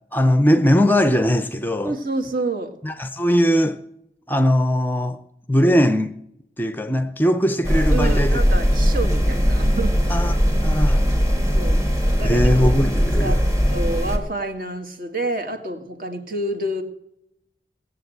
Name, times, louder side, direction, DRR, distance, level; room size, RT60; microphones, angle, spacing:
voice 1, 0.1-1.9 2.8-3.8 4.3-5.2 5.5-6.2 6.6-8.4 10.1-10.3 10.6-11.0 12.2-13.4, equal, 10° left, 0.5 m, -19 dB
voice 2, 1.8-2.7 7.9-10.1 11.5-12.5 13.2-16.8, right 2 dB, 50° right, 1.9 m, -28 dB
sound 1, 7.6-14.2, equal, 20° right, 1.7 m, -19 dB
18.0 x 7.8 x 7.9 m
head